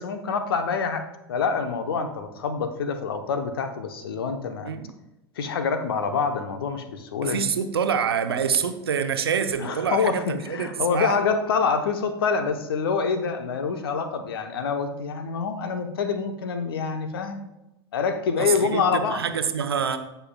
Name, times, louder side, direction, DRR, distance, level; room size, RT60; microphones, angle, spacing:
voice 1, 0.0-4.8 5.4-7.5 9.6-17.4 17.9-19.2, left 5 dB, 65° left, 8 dB, 0.9 m, -26 dB
voice 2, 7.2-11.1 18.4-20.0, right 7 dB, 75° right, 8 dB, 0.8 m, -26 dB
16.0 x 5.6 x 2.3 m, 0.96 s
figure-of-eight pair, 80°, 13 cm